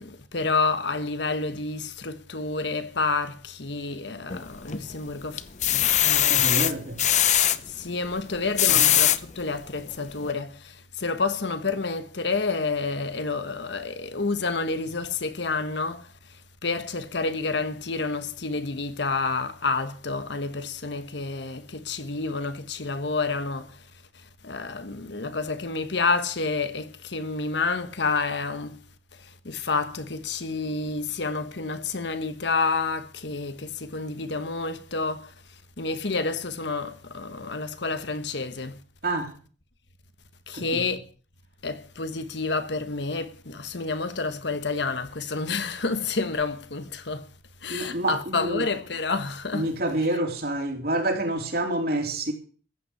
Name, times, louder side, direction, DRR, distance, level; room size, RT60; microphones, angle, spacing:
voice 1, 0.0-6.7 7.7-23.9 24.1-28.8 29.2-35.3 35.8-38.8 40.5-41.0 41.6-47.3 47.6-49.7, left 3 dB, 65° left, 1.2 m, -29 dB
sound 1, 4.3-4.9 5.4-7.6 8.3-9.2 9.8-9.9 10.2-10.3, left 11 dB, 35° left, 0.7 m, -21 dB
voice 2, 6.3-7.0 8.7-8.9 39.0-39.3 40.5-40.8 47.7-48.6 49.5-52.3, right 1 dB, 50° right, 3.4 m, -28 dB
14.5 x 8.4 x 8.0 m
head